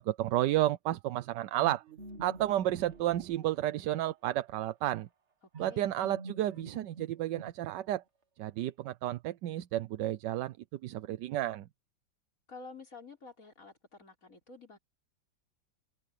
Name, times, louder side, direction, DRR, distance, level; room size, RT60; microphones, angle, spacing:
voice 1, 0.0-1.8 2.2-5.1 5.6-8.0 8.4-10.6 10.8-11.7, right 14 dB, 70° right, 1.2 m, -31 dB
sound 1, 1.6-4.1 5.5-8.0, right 3 dB, 40° right, 1.6 m, -48 dB
voice 2, 5.6-5.9 12.5-14.8, left 3 dB, 45° left, 5.0 m, -50 dB
omnidirectional pair, 2.1 m